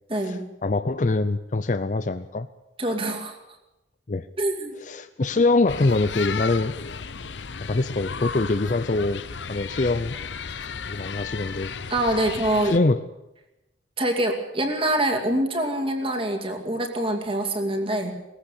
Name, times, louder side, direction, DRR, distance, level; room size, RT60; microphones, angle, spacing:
voice 1, 0.1-0.4 2.8-3.4 4.4-4.7 11.9-12.7 14.0-18.1, right 1 dB, 30° right, 3 dB, 2.5 m, -25 dB
voice 2, 0.6-2.5 4.1-4.3 4.9-6.7 7.6-9.2 9.5-10.2 10.9-11.7 12.7-13.0, left 2 dB, 45° left, 11 dB, 0.6 m, -23 dB
sound 1, 5.7-12.8, left 5 dB, 80° left, 0.8 m, -34 dB
20.0 x 15.0 x 8.5 m, 0.96 s
head